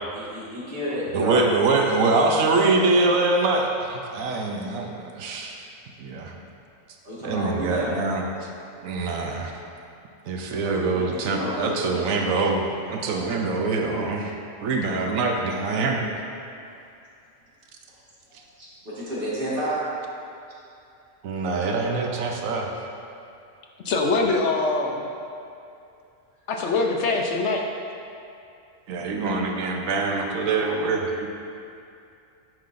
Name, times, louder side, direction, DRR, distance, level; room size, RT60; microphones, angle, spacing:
voice 1, 0.1-1.7 7.0-8.0 10.4-12.1 16.7-16.8 18.3-19.8, right 1 dB, 45° right, -8 dB, 1.8 m, -31 dB
voice 2, 1.1-5.6 6.0-6.4 7.2-8.5 8.8-9.5 10.3-12.6 12.9-14.3 14.6-16.1 21.2-22.7 28.9-31.3, right 3 dB, 85° right, 1 dB, 1.1 m, -24 dB
voice 3, 23.8-25.1 26.5-27.7, left 3 dB, 65° left, 1 dB, 0.9 m, -23 dB
10.5 x 5.6 x 2.6 m, 2.5 s
omnidirectional pair, 1.4 m